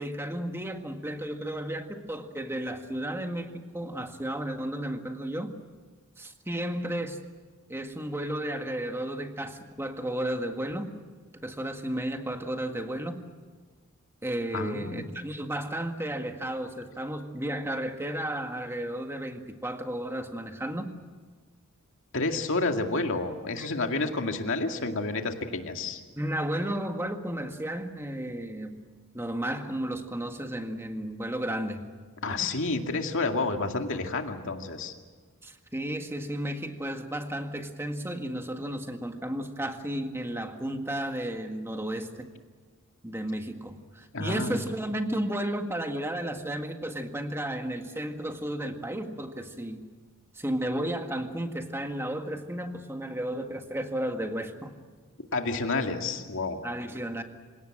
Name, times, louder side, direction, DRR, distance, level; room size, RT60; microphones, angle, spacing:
voice 1, 0.0-5.6 6.2-7.2 7.7-10.9 11.4-13.2 14.2-21.0 23.6-23.7 26.2-28.8 29.1-31.9 32.3-32.5 35.4-42.3 43.0-49.9 50.3-54.7 56.6-57.2, right 1 dB, 10° right, 5 dB, 1.8 m, -33 dB
voice 2, 14.5-15.1 22.1-26.0 32.2-34.9 44.1-44.6 55.3-56.6, left 3 dB, 60° left, 4 dB, 2.2 m, -30 dB
27.5 x 18.0 x 8.8 m, 1.5 s
head